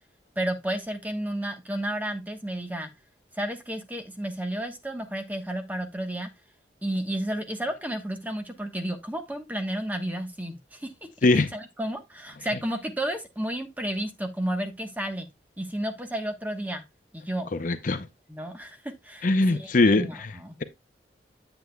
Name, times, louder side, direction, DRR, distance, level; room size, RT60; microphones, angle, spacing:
voice 1, 0.4-2.9 3.3-6.3 6.8-10.9 11.5-15.3 15.6-16.8 17.1-17.5 18.3-20.5, right 1 dB, 10° right, 1.1 m, -32 dB
voice 2, 17.5-18.1 19.2-20.3, left 2 dB, 50° left, 0.6 m, -22 dB
9.3 x 7.9 x 2.2 m
head